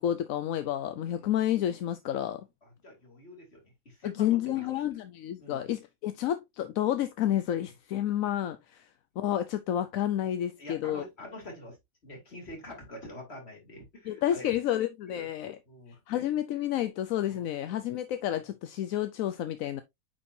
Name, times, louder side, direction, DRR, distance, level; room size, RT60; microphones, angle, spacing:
voice 1, 0.0-2.4 4.0-8.9 9.2-11.0 14.1-15.6 16.1-19.8, left 11 dB, 80° left, 1.0 m, -30 dB
voice 2, 2.6-4.7 5.4-5.7 10.6-11.8 12.0-14.5 15.1-15.3 15.7-16.3 17.3-17.4, left 1 dB, 50° left, 3.1 m, -46 dB
9.1 x 4.3 x 2.6 m
omnidirectional pair, 1.4 m